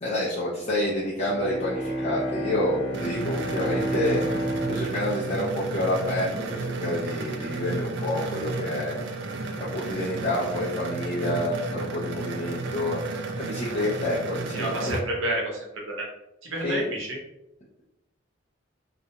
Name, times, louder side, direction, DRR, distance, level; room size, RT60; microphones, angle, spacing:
voice 1, 0.0-4.2 4.7-9.0 9.6-13.0 13.4-15.0 16.6-16.8, left 1 dB, 35° left, -9 dB, 0.5 m, -28 dB
Bowed string instrument, 1.2-6.5, right 1 dB, 70° left, 0.7 m, -32 dB
sound 1, 2.9-15.0, right 3 dB, 60° right, 0.3 m, -33 dB
voice 2, 14.5-16.1 16.5-17.2, right 1 dB, 85° right, -1 dB, 0.8 m, -29 dB
2.4 x 2.2 x 2.8 m, 0.90 s
head